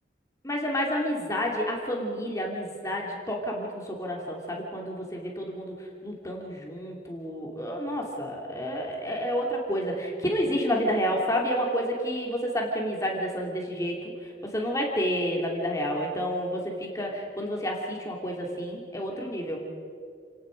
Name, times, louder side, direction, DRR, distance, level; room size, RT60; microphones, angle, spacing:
voice 1, 0.4-5.7 6.0-19.6, equal, 20° left, -1 dB, 2.8 m, -30 dB
29.5 x 18.0 x 5.2 m, 2.3 s
head